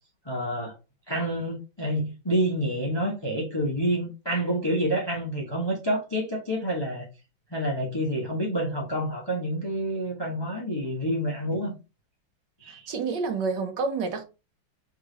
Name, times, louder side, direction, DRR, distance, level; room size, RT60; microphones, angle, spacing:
voice 1, 0.2-0.7 1.1-7.0 7.5-11.8 12.6-12.9, right 1 dB, 20° left, 0.6 m, -28 dB
voice 2, 12.7-14.2, right 4 dB, 65° right, 1.4 m, -29 dB
3.7 x 3.2 x 3.8 m
omnidirectional pair, 2.2 m